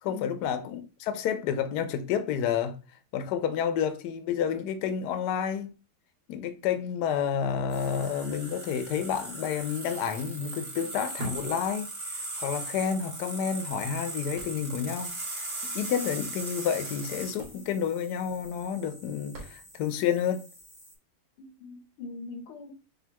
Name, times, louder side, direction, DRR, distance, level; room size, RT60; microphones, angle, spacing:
voice 1, 0.0-2.8 3.1-5.7 6.3-11.9 12.4-15.4 15.7-20.5, left 8 dB, 70° left, 1.0 m, -30 dB
sound 1, 7.7-20.9, right 2 dB, 20° right, 0.9 m, -39 dB
sound 2, 11.1-12.4 12.8-12.9 13.5-15.0 15.3-15.4 15.6-15.9 16.8-16.9 17.2-20.0 20.6-20.7, right 2 dB, 70° right, 2.0 m, -45 dB
voice 2, 21.4-22.7, left 4 dB, 85° left, 1.6 m, -42 dB
5.3 x 2.6 x 2.9 m
omnidirectional pair, 2.3 m